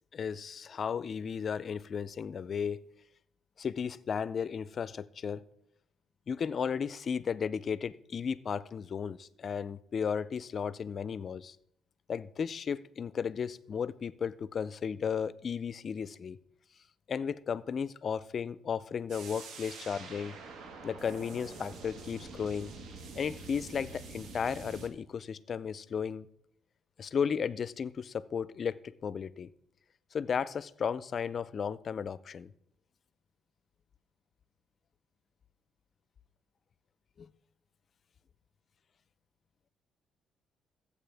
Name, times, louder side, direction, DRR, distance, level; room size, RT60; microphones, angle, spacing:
voice 1, 0.1-2.8 3.6-5.4 6.3-11.6 12.1-16.4 17.1-20.4 20.8-22.7 23.1-26.3 27.0-29.5 30.1-32.5 37.2-37.3, left 6 dB, 45° left, 0.4 m, -34 dB
sound 1, 19.1-24.9, right 4 dB, 70° right, 1.5 m, -46 dB
14.0 x 8.4 x 3.4 m
cardioid pair, 110°, 0 cm